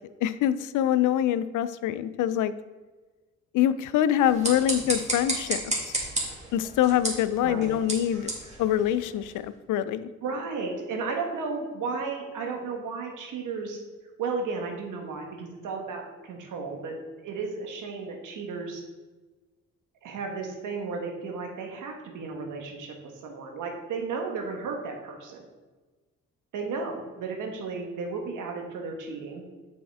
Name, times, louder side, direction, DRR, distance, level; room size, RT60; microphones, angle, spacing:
voice 1, 0.2-2.5 3.5-5.6 5.9-6.0 6.5-8.3 8.6-10.1, left 11 dB, 80° left, 14 dB, 0.4 m, -25 dB
sound 1, 4.2-9.5, right 2 dB, 20° right, 2.1 m, -33 dB
voice 2, 10.2-13.8 14.2-16.9 17.2-18.8 20.0-25.4 26.5-29.4, right 4 dB, 80° right, 2 dB, 1.3 m, -34 dB
7.0 x 5.2 x 3.5 m, 1.3 s
cardioid pair, 70°, 31 cm